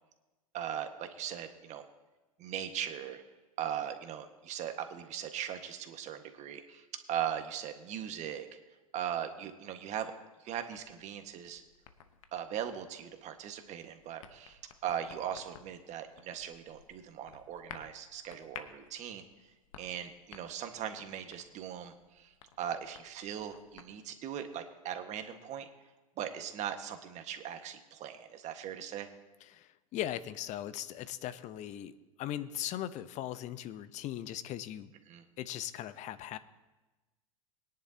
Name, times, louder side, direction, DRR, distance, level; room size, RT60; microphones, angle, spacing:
voice 1, 0.5-1.8 2.4-3.2 3.6-8.5 8.9-10.1 10.4-11.6 12.3-19.2 19.8-22.3 22.6-25.7 26.2-29.1 35.1-35.2, right 9 dB, 40° right, 6 dB, 1.6 m, -39 dB
sound 1, 10.7-24.0, left 8 dB, 70° left, 1.1 m, -55 dB
voice 2, 29.4-34.9 35.4-36.4, left 12 dB, 40° left, 13 dB, 0.9 m, -39 dB
22.0 x 10.5 x 2.9 m, 1.1 s
hypercardioid pair, 90°, 18 cm